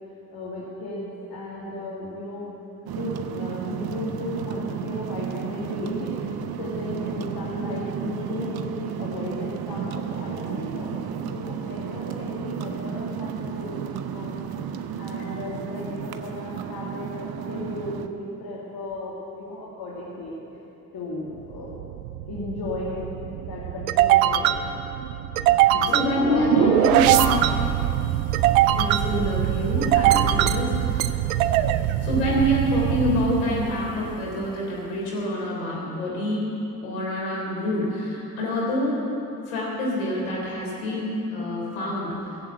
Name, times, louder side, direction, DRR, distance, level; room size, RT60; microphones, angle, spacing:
voice 1, 0.3-2.5 2.9-14.5 15.0-20.4 20.9-21.8 22.3-23.0 23.5-24.6 25.7-27.1, left 2 dB, 60° left, -6 dB, 2.8 m, -34 dB
sound 1, 2.9-18.1, right 8 dB, 60° right, 0.9 m, -33 dB
sound 2, 21.5-34.3, right 12 dB, 85° right, 0.5 m, -22 dB
voice 2, 25.7-27.4 28.7-31.1 32.0-36.6 36.8-39.0 39.5-42.3, equal, 85° left, -4 dB, 3.7 m, -26 dB
16.0 x 7.7 x 7.9 m, 2.9 s
hypercardioid pair, 50°, 41 cm